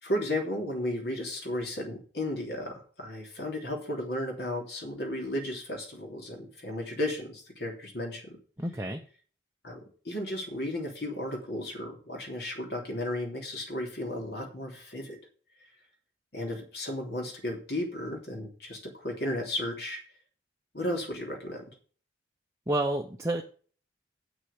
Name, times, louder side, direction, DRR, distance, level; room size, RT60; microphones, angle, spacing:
voice 1, 0.0-8.4 9.6-15.2 16.3-20.0 20.7-21.7, left 1 dB, 55° left, 2 dB, 3.1 m, -34 dB
voice 2, 8.6-9.0 22.7-23.4, right 1 dB, 15° right, 3 dB, 0.7 m, -29 dB
8.0 x 6.3 x 8.1 m, 0.42 s
head